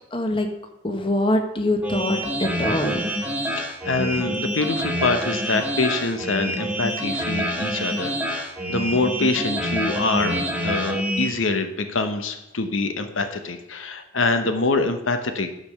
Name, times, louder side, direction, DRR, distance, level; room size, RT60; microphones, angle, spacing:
voice 1, 0.1-0.5 0.8-3.1, left 1 dB, 25° left, 5 dB, 1.1 m, -24 dB
sound 1, 1.8-11.3, equal, 10° right, 1.3 m, -27 dB
voice 2, 3.5-15.5, left 3 dB, 90° left, 8 dB, 1.0 m, -25 dB
12.0 x 5.3 x 6.7 m, 0.87 s
head